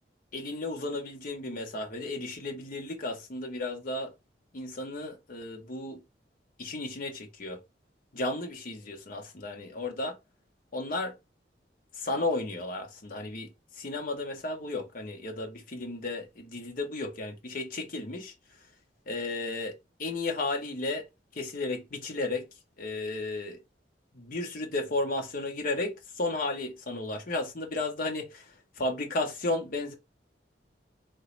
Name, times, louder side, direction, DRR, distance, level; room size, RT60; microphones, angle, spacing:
voice 1, 0.3-4.1 4.5-6.0 6.6-7.6 8.1-10.2 10.7-11.1 12.0-13.5 13.8-18.3 19.1-19.7 20.0-21.0 21.3-22.4 22.8-23.6 24.2-28.4 28.8-29.9, left 2 dB, 50° left, 0.8 m, -33 dB
4.4 x 3.0 x 3.0 m
head